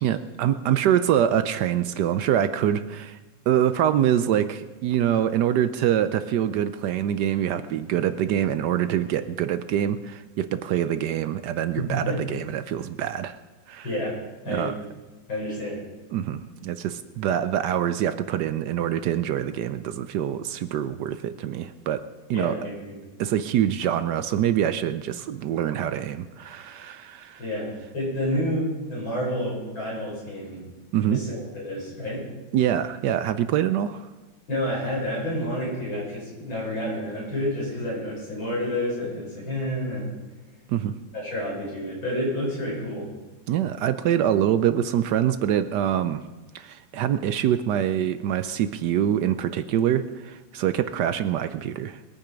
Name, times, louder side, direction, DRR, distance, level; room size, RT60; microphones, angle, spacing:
voice 1, 0.0-3.2 3.5-13.4 13.7-13.8 14.5-14.7 16.1-22.0 22.3-22.6 23.2-27.4 30.9-31.2 32.5-34.1 40.7-40.9 43.5-46.2 46.5-52.1, right 10 dB, 70° right, 12 dB, 1.1 m, -25 dB
voice 2, 11.8-12.2 13.8-14.1 14.4-14.8 15.3-15.8 22.3-22.9 27.4-30.7 31.1-32.3 34.5-40.1 41.1-43.1, left 1 dB, 90° left, -6 dB, 7.6 m, -29 dB
22.0 x 8.8 x 5.2 m, 1.2 s
omnidirectional pair, 2.1 m